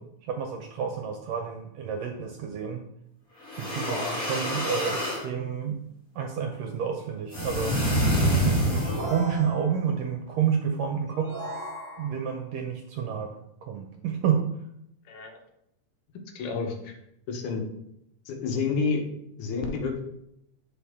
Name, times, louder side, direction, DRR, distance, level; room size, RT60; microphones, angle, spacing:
voice 1, 0.3-2.8 3.6-5.8 6.1-7.8 8.4-11.4 12.0-13.3 13.6-14.4, right 7 dB, 75° right, 3 dB, 1.6 m, -29 dB
sound 1, 3.4-5.2 7.3-9.2, equal, 30° left, 2.6 m, -26 dB
voice 2, 3.9-4.2 15.1-15.4 16.4-17.0 17.3-17.7 18.3-19.0 19.4-20.0, left 4 dB, 75° left, 3 dB, 2.4 m, -29 dB
sound 2, 8.7-10.0 11.1-12.4, right 1 dB, 15° right, 2.1 m, -38 dB
9.0 x 4.3 x 3.6 m, 0.79 s
omnidirectional pair, 3.6 m